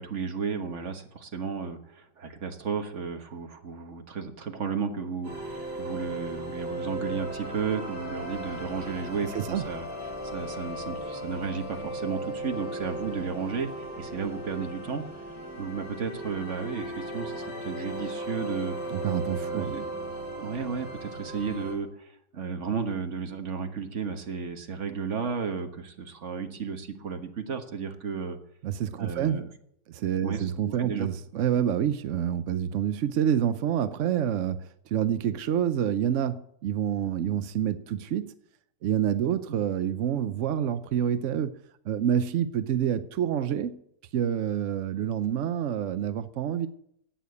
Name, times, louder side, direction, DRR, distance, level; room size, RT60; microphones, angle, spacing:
voice 1, 0.0-9.9 10.3-15.1 15.6-18.8 19.4-19.8 20.4-28.4 29.0-29.5 30.2-31.1, right 5 dB, 45° right, 6 dB, 1.5 m, -33 dB
sound 1, 5.2-21.7, right 1 dB, 10° right, 6.7 m, -36 dB
voice 2, 9.3-9.7 18.9-19.7 28.6-29.4 29.9-38.3 38.8-41.5 41.8-43.8 44.1-46.7, right 9 dB, 70° right, 12 dB, 0.7 m, -27 dB
11.5 x 8.6 x 8.3 m, 0.72 s
omnidirectional pair, 2.0 m